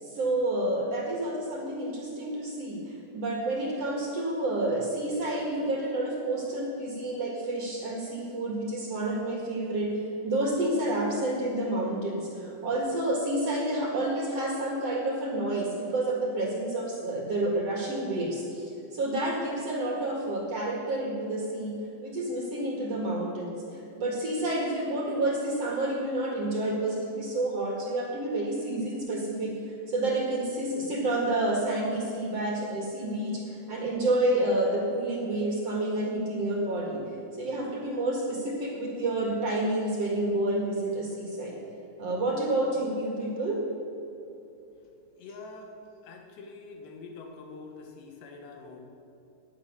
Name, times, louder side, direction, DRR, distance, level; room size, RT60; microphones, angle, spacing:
voice 1, 0.0-9.9 10.2-21.7 22.0-37.0 37.3-41.6 42.0-43.6, right 1 dB, 50° right, -1 dB, 2.3 m, -29 dB
voice 2, 45.2-45.7 46.0-48.8, left 4 dB, 80° left, 3 dB, 3.8 m, -45 dB
17.5 x 10.5 x 6.8 m, 2.9 s
omnidirectional pair, 4.9 m